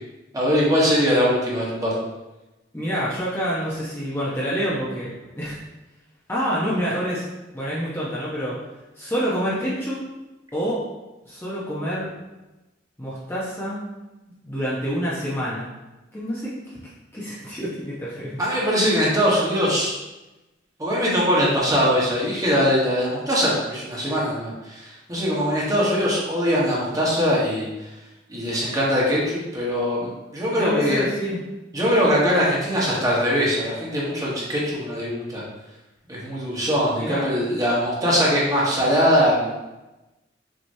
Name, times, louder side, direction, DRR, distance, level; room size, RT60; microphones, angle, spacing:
voice 1, 0.3-2.0 18.4-19.9 20.8-27.7 28.3-31.0 31.7-35.4 36.1-39.6, equal, 20° right, -6 dB, 1.2 m, -21 dB
voice 2, 2.7-5.6 6.3-7.3 7.5-8.7 9.0-10.0 10.5-10.9 11.3-12.1 13.0-13.8 14.4-15.7 16.1-16.8 17.1-18.4 30.5-31.4 37.0-37.3, equal, 15° left, -8 dB, 0.8 m, -27 dB
6.1 x 3.0 x 2.7 m, 1.0 s
head